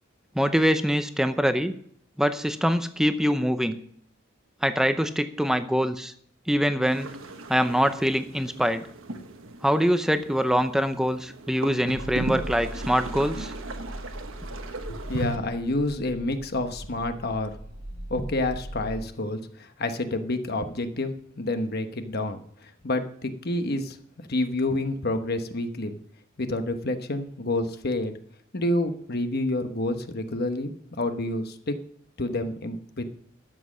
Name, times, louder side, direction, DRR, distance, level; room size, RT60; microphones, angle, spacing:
voice 1, 0.3-1.7 2.2-3.8 4.6-6.1 6.5-7.1 7.5-8.9 9.6-13.5, equal, 5° right, 10 dB, 0.6 m, -24 dB
sound 1, 6.9-15.4, right 2 dB, 75° right, 1.2 m, -37 dB
sound 2, 11.9-19.0, right 1 dB, 30° right, 1.4 m, -39 dB
voice 2, 14.8-17.5 17.9-24.0 24.3-26.0 26.4-28.1 28.5-30.7 31.0-31.8 32.2-33.0, left 2 dB, 50° left, 8 dB, 1.1 m, -28 dB
12.5 x 7.5 x 6.2 m, 0.64 s
head